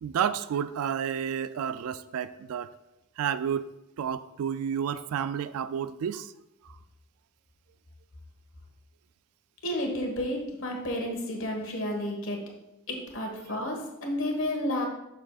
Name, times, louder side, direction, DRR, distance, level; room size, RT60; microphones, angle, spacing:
voice 1, 0.0-2.7 3.2-3.7 4.0-6.3 13.5-13.6, right 8 dB, 80° right, 0.3 m, -31 dB
voice 2, 9.6-12.4 12.9-14.8, left 1 dB, 60° left, 1.5 m, -31 dB
8.5 x 6.4 x 2.4 m
head